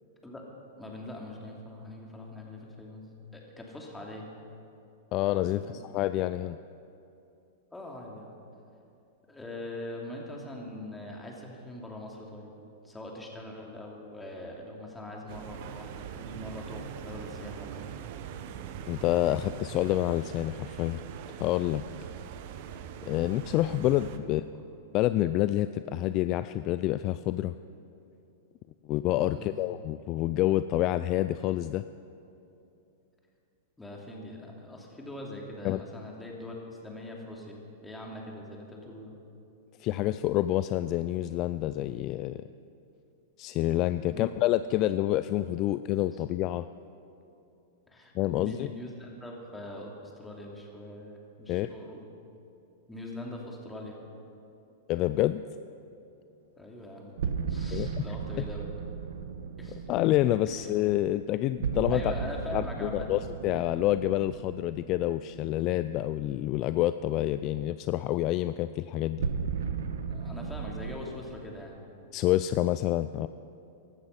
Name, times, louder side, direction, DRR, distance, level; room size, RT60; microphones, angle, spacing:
voice 1, 0.8-3.1 3.3-4.3 5.6-5.8 7.7-8.3 9.3-12.5 12.8-17.9 24.2-24.5 29.3-29.6 33.8-39.1 44.1-44.3 46.1-46.2 47.9-52.1 52.9-54.0 56.6-57.1 57.4-58.6 59.6-59.9 60.5-60.7 61.9-63.3 70.1-71.8, left 1 dB, 10° left, -1 dB, 2.6 m, -42 dB
voice 2, 5.1-6.6 18.9-21.0 21.4-21.8 23.0-24.4 24.9-27.5 28.9-31.8 35.6-35.8 39.8-42.4 43.4-46.7 48.1-48.7 51.5-51.7 54.9-55.4 57.7-58.0 59.9-62.1 62.5-69.3 72.1-73.3, left 14 dB, 40° left, 13 dB, 0.3 m, -28 dB
sound 1, 15.3-24.2, right 8 dB, 55° right, 0.9 m, -42 dB
sound 2, 57.2-66.2 69.2-71.0, right 6 dB, 80° right, 1.0 m, -35 dB
16.0 x 12.0 x 5.7 m, 2.7 s
hypercardioid pair, 125°, 0 cm